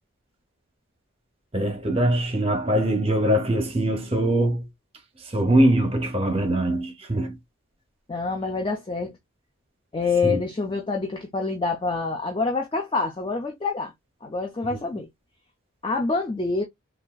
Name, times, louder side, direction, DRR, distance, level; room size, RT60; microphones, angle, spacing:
voice 1, 1.5-4.6 5.3-7.4 10.2-10.4, right 1 dB, 30° right, 0.7 m, -22 dB
voice 2, 8.1-9.1 9.9-13.9 14.2-15.1 15.8-16.6, left 4 dB, 25° left, 0.3 m, -26 dB
3.5 x 2.3 x 2.2 m
head